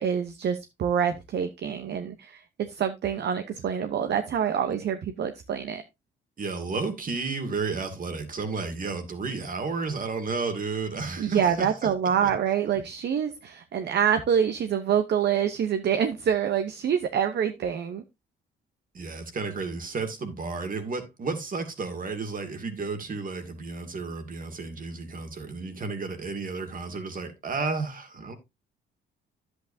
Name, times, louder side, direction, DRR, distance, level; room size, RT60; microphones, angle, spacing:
voice 1, 0.0-5.8 11.2-18.0, right 8 dB, 60° right, 0.9 m, -26 dB
voice 2, 6.4-12.3 18.9-28.3, right 4 dB, 45° right, 2.1 m, -32 dB
10.5 x 8.1 x 2.7 m
cardioid pair, 90°, 20 cm